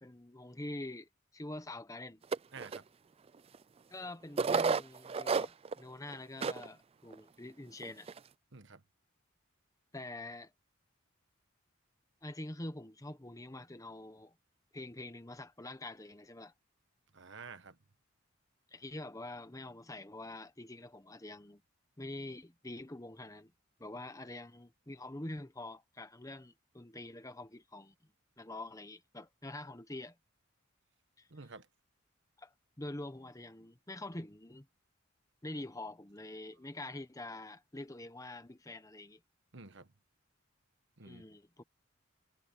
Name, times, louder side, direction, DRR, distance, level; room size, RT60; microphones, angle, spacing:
voice 1, 0.0-2.2 3.9-8.1 9.9-10.5 12.2-14.3 14.7-16.5 18.7-21.6 22.0-23.5 23.8-27.9 28.4-30.1 31.2-31.3 32.4-32.5 32.8-34.7 35.4-39.2 41.0-41.6, left 2 dB, 15° left, 1.1 m, -45 dB
sound 1, 2.3-2.8 3.5-3.6 4.4-5.8 6.1-6.2 6.4-6.7 7.1-7.2 7.8-8.2, right 5 dB, 30° right, 0.4 m, -31 dB
voice 2, 2.5-2.8 8.5-8.8 17.1-17.8 31.3-31.7 39.5-39.9 41.0-41.2, right 4 dB, 60° right, 1.4 m, -50 dB
head